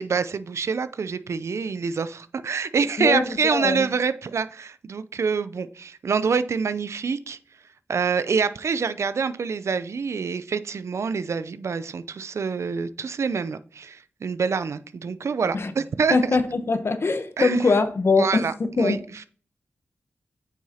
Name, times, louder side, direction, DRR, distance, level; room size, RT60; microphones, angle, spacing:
voice 1, 0.0-7.4 7.9-16.3 17.4-17.6 18.2-19.2, right 5 dB, 70° right, 0.5 m, -26 dB
voice 2, 3.0-3.9 15.5-15.7 16.1-18.5 18.8-19.0, left 3 dB, 55° left, 0.9 m, -22 dB
8.6 x 6.3 x 2.9 m
cardioid pair, 50°, 5 cm